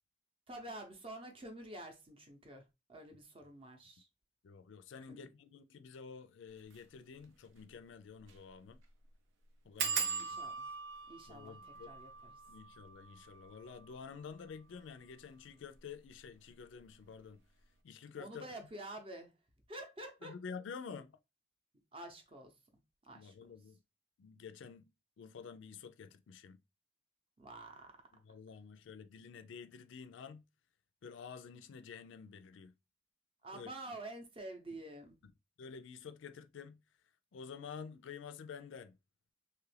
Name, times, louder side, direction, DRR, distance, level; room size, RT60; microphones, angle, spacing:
voice 1, 0.5-4.1 5.1-5.3 10.2-10.7 11.1-11.6 11.9-12.3 18.2-19.3 19.7-20.4 20.9-21.0 21.9-22.5 23.0-23.3 27.4-28.0 33.4-35.2, right 1 dB, 30° right, 0.6 m, -48 dB
voice 2, 4.4-8.8 9.6-10.4 11.3-11.9 12.5-17.4 17.8-18.5 20.2-21.1 23.1-23.8 24.2-24.9 25.2-26.6 28.1-30.4 31.0-32.7 33.5-33.9 34.7-34.8 35.6-36.8 37.3-39.0, left 6 dB, 75° left, 0.4 m, -50 dB
sound 1, 6.6-6.8 7.2-7.3 7.6-7.7 8.2-8.5 8.7-8.8 9.8-15.1 15.7-16.3 16.6-16.9 17.2-17.3, right 6 dB, 85° right, 0.6 m, -41 dB
2.9 x 2.4 x 3.1 m
head